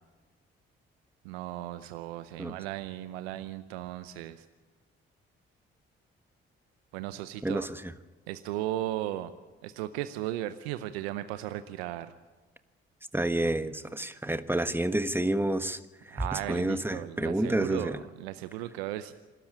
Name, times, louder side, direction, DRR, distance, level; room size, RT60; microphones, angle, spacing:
voice 1, 1.2-4.5 6.9-7.7 8.3-9.3 9.6-12.1 16.1-19.1, right 14 dB, 85° right, 13 dB, 0.7 m, -36 dB
voice 2, 7.4-7.9 13.1-15.8 16.1-18.0, right 1 dB, 5° right, 11 dB, 1.4 m, -29 dB
27.5 x 12.5 x 8.7 m, 1.3 s
hypercardioid pair, 45°, 30 cm